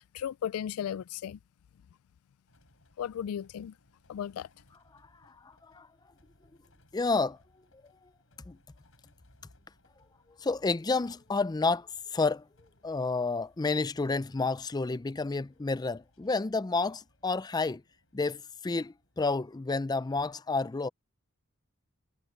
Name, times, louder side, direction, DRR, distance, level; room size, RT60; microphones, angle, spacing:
voice 1, 0.1-1.4 3.0-3.7 4.1-4.5, left 9 dB, 90° left, 0.3 m, -35 dB
sound 1, 2.5-20.2, left 1 dB, 65° left, 8.0 m, -66 dB
voice 2, 6.9-7.4 8.5-8.6 10.4-11.9 12.1-12.4 12.8-17.8 18.1-20.9, left 3 dB, 20° left, 0.4 m, -30 dB
head